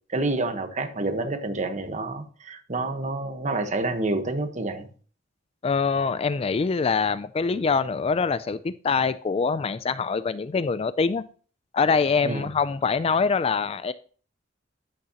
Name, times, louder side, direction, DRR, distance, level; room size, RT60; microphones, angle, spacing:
voice 1, 0.1-4.9 11.9-12.0 12.2-12.5, right 2 dB, 40° right, 7 dB, 1.3 m, -28 dB
voice 2, 5.6-11.2 11.7-13.9, left 5 dB, 30° left, 15 dB, 0.3 m, -24 dB
13.5 x 6.6 x 2.9 m, 0.40 s
head